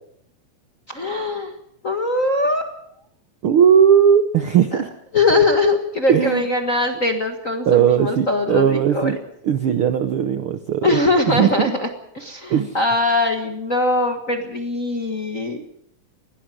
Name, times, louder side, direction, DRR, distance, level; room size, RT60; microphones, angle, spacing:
voice 1, 0.9-1.5 1.8-2.7 4.7-4.8 5.1-9.1 10.8-11.9 12.1-15.6, left 2 dB, 35° left, 4 dB, 1.3 m, -21 dB
voice 2, 3.4-4.9 6.1-6.5 7.7-9.2 9.4-11.0 11.3-11.7 12.5-12.8, right 8 dB, 65° right, 9 dB, 1.4 m, -17 dB
21.0 x 18.0 x 7.7 m, 0.73 s
omnidirectional pair, 3.6 m